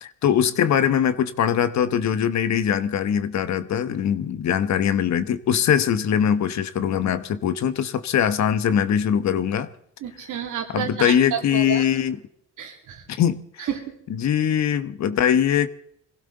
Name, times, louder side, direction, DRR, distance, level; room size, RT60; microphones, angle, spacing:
voice 1, 0.0-9.7 10.7-12.2 13.1-13.7 14.1-15.7, left 9 dB, 65° left, 1.0 m, -22 dB
voice 2, 10.0-11.9 12.6-13.0 13.6-13.8, right 8 dB, 80° right, 2.8 m, -30 dB
22.5 x 16.0 x 3.9 m
cardioid pair, 90°, 30 cm